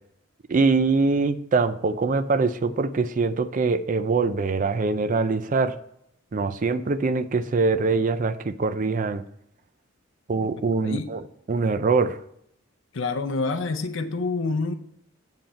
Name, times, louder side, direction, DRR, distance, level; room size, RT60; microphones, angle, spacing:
voice 1, 0.5-5.8 6.3-9.2 10.3-11.2 11.5-12.2, right 4 dB, 40° right, 0.4 m, -23 dB
voice 2, 10.6-11.1 12.9-14.7, left 3 dB, 70° left, 0.6 m, -27 dB
7.7 x 7.3 x 4.3 m
head